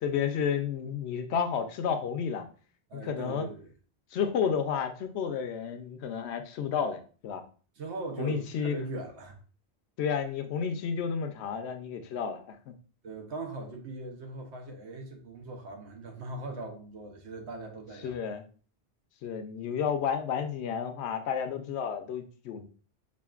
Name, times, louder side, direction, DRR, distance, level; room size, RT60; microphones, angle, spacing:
voice 1, 0.0-2.5 2.9-3.4 4.1-7.4 8.2-8.8 10.0-12.7 18.0-18.4 19.2-22.6, left 7 dB, 75° left, 0.8 m, -31 dB
voice 2, 2.9-3.7 7.8-9.4 13.0-18.1, right 2 dB, 80° right, 1.1 m, -40 dB
5.0 x 2.5 x 2.3 m
omnidirectional pair, 1.1 m